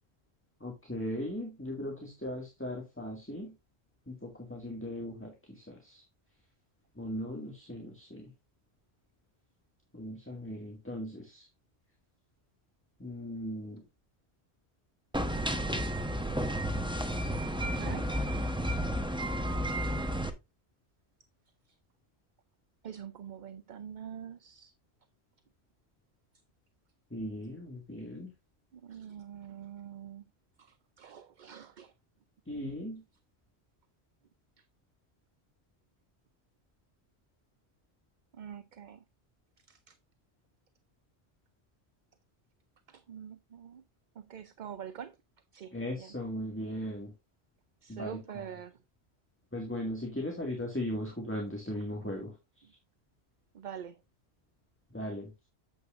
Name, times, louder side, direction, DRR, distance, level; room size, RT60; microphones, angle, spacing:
voice 1, 0.6-3.5 4.1-6.0 7.0-8.3 9.9-11.5 13.0-13.8 27.1-28.3 32.5-33.0 45.7-47.1 47.9-48.4 49.5-52.4 54.9-55.3, equal, 10° left, 1.9 m, -38 dB
sound 1, 15.1-20.3, equal, 5° right, 0.9 m, -32 dB
voice 2, 17.6-18.1 22.8-24.7 28.7-30.2 30.6-31.9 38.3-39.0 39.7-39.9 42.9-43.8 44.2-45.2 45.5-46.1 47.8-48.8 52.6-52.7 53.5-54.0, right 8 dB, 50° right, 0.7 m, -45 dB
9.0 x 7.8 x 2.5 m
omnidirectional pair, 1.1 m